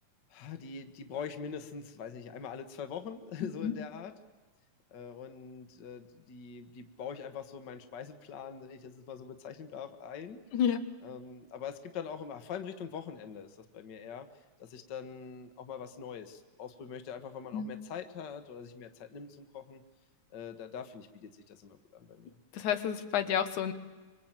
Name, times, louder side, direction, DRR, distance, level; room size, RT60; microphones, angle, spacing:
voice 1, 0.3-4.1 4.9-10.4 11.0-14.3 14.6-19.8 20.3-22.4, left 7 dB, 45° left, 8 dB, 1.7 m, -43 dB
voice 2, 22.5-23.7, left 9 dB, 80° left, 8 dB, 2.8 m, -30 dB
25.5 x 24.5 x 9.0 m, 1.3 s
omnidirectional pair, 3.4 m